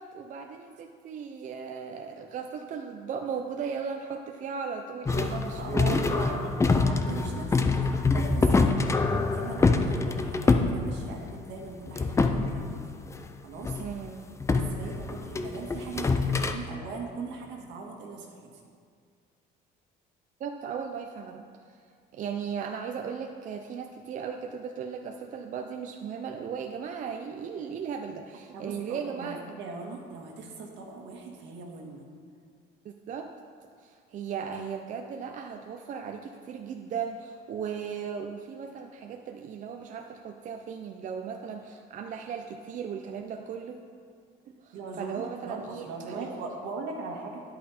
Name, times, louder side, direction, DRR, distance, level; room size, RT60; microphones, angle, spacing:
voice 1, 0.0-6.4 13.8-14.3 14.8-15.1 20.4-21.4 22.1-29.4 32.8-33.3 33.8-43.8 44.6-46.3, right 6 dB, 40° right, 4 dB, 0.5 m, -37 dB
sound 1, 5.1-11.5 11.9-13.2 13.6-13.8 14.4-16.5, left 3 dB, 15° left, 0.5 m, -25 dB
voice 2, 5.1-8.9 9.3-12.8 13.4-13.8 14.5-18.4 28.5-32.1 44.7-47.4, right 3 dB, 75° right, 0 dB, 1.7 m, -40 dB
10.5 x 8.5 x 4.3 m, 2.1 s
cardioid pair, 140°, 19 cm